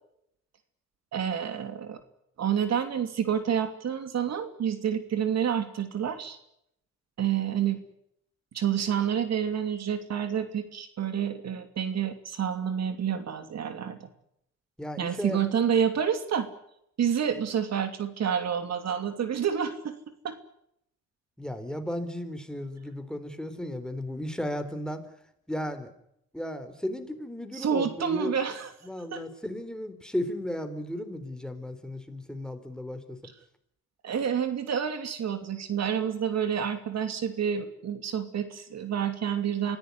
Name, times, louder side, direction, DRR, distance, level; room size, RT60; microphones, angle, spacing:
voice 1, 1.1-2.0 2.4-6.4 7.2-7.8 8.5-14.1 15.0-16.5 17.0-20.0 20.2-20.4 27.5-28.7 29.1-29.2 34.0-39.8, right 8 dB, 60° right, 9 dB, 2.9 m, -28 dB
voice 2, 14.8-15.4 21.4-25.1 25.5-25.9 26.3-28.3 28.8-33.2, left 1 dB, ahead, 8 dB, 4.0 m, -35 dB
25.5 x 16.5 x 9.6 m, 0.75 s
cardioid pair, 90°, 30 cm